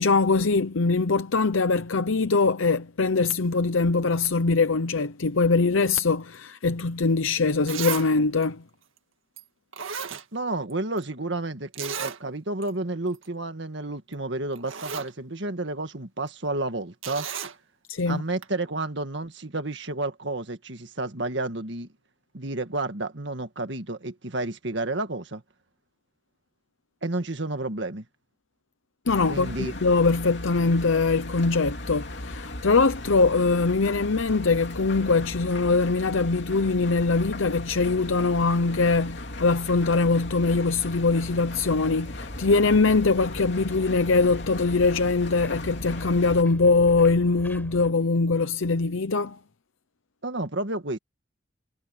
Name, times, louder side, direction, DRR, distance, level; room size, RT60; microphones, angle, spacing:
voice 1, 0.0-8.6 17.9-18.2 29.1-49.4, left 3 dB, 85° left, 0.8 m, -22 dB
Zipper (clothing), 7.1-7.2 7.7-8.1 8.4-8.5 9.4-9.5 9.7-10.7 11.0-11.1 11.7-12.2 12.6-12.7 13.1-13.3 14.1-14.2 14.5-15.1 17.0-17.6 18.4-18.5, right 7 dB, 85° right, 1.9 m, -34 dB
voice 2, 10.3-17.3 18.1-21.9 22.3-25.4 27.0-28.1 29.3-29.7 50.2-51.0, right 2 dB, 65° right, 1.8 m, -31 dB
Engine, 29.1-46.4, left 1 dB, 60° left, 2.9 m, -37 dB
sound 1, 40.2-47.9, equal, 10° left, 5.8 m, -45 dB
head